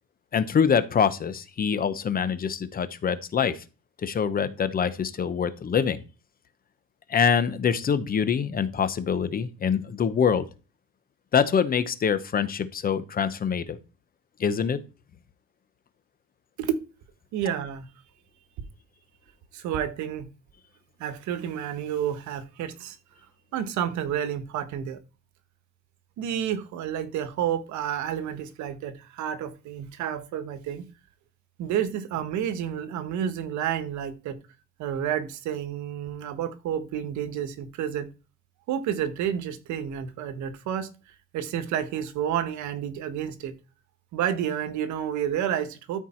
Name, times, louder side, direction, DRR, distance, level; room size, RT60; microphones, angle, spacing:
voice 1, 0.3-3.6 4.0-6.0 7.1-10.5 11.3-13.8 14.4-14.8, left 7 dB, 30° left, 13 dB, 0.8 m, -25 dB
voice 2, 17.3-17.9 19.5-20.3 21.0-23.0 23.5-25.0 26.2-30.8 31.6-34.4 34.8-38.1 38.7-43.5 44.1-46.0, right 9 dB, 80° right, 11 dB, 1.4 m, -30 dB
13.0 x 4.6 x 4.4 m, 0.33 s
cardioid pair, 150°, 29 cm